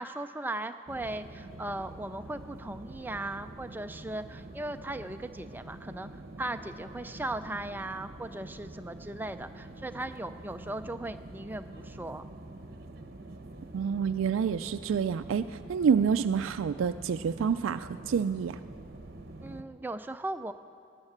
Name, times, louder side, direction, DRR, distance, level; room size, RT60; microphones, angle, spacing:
voice 1, 0.0-6.1 6.4-12.3 19.4-20.5, right 1 dB, 10° right, 9 dB, 0.4 m, -38 dB
sound 1, 0.9-19.6, right 2 dB, 50° right, 1.0 m, -46 dB
voice 2, 13.7-18.6, right 6 dB, 80° right, 10 dB, 0.3 m, -28 dB
18.0 x 9.7 x 7.3 m, 2.6 s
head